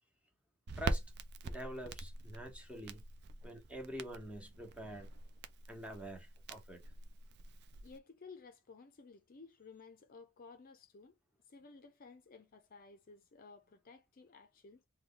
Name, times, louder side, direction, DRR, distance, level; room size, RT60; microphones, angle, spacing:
Crackle, 0.7-8.0, right 3 dB, 55° right, 0.4 m, -44 dB
voice 1, 1.4-3.0 3.4-5.1 5.7-6.8, equal, 5° right, 1.0 m, -46 dB
voice 2, 7.8-11.2 11.5-14.8, left 4 dB, 45° left, 0.5 m, -56 dB
3.0 x 2.2 x 3.7 m
head